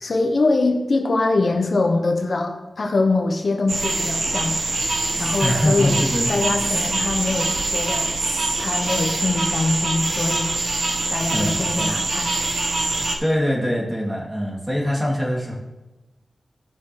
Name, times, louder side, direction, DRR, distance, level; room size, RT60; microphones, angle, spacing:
voice 1, 0.0-4.6 5.2-6.0 6.3-8.2 8.6-10.6 11.1-12.3, left 3 dB, 55° left, 3 dB, 0.9 m, -23 dB
sound 1, 3.7-13.2, right 2 dB, 70° right, 1.3 m, -24 dB
voice 2, 5.4-6.9 11.3-12.0 13.2-15.5, equal, 15° right, -5 dB, 2.8 m, -24 dB
14.0 x 5.8 x 3.2 m, 1.1 s
wide cardioid pair, 75°, 0 cm